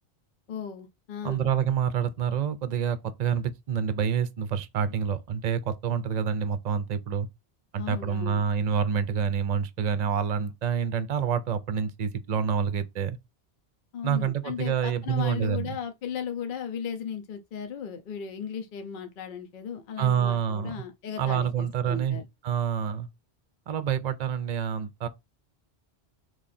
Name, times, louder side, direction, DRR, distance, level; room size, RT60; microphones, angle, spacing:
voice 1, 0.5-1.5 7.8-8.4 13.9-22.2, left 7 dB, 55° left, 0.8 m, -36 dB
voice 2, 1.2-7.3 7.7-13.2 14.0-15.8 20.0-20.7 21.2-23.1 23.7-25.1, right 7 dB, 50° right, 0.6 m, -27 dB
3.6 x 3.2 x 4.1 m
omnidirectional pair, 1.1 m